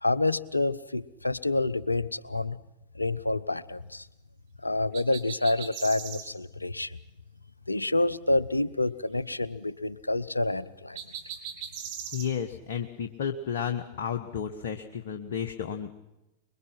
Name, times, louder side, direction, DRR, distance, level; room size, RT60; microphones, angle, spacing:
voice 1, 0.0-2.6 2.9-4.1 4.6-7.0 7.7-11.0, left 2 dB, 85° left, 18 dB, 0.7 m, -28 dB
sound 1, 4.9-6.3 10.9-12.3, right 8 dB, 50° right, 3.2 m, -39 dB
voice 2, 12.1-15.9, left 8 dB, 55° left, 6 dB, 1.3 m, -32 dB
25.5 x 22.0 x 5.9 m, 0.96 s
figure-of-eight pair, 90°, 0 cm